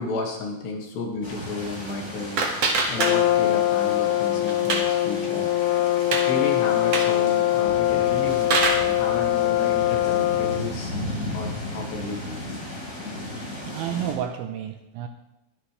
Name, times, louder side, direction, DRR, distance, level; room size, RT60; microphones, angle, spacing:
voice 1, 0.0-2.4 2.9-5.5 6.1-10.9 11.3-12.4, left 3 dB, 65° left, 0 dB, 3.7 m, -33 dB
sound 1, 1.2-14.1, left 1 dB, 15° left, 5.0 m, -35 dB
sound 2, 1.6-3.6 3.9-5.0 5.4-5.5 5.8-6.3 6.8-7.2 8.0-8.9, right 3 dB, 60° right, 1.6 m, -26 dB
Brass instrument, 3.0-10.8, left 14 dB, 90° left, 3.3 m, -22 dB
voice 2, 13.6-15.1, right 10 dB, 80° right, 6 dB, 2.9 m, -31 dB
22.5 x 10.5 x 3.3 m, 0.96 s
omnidirectional pair, 5.9 m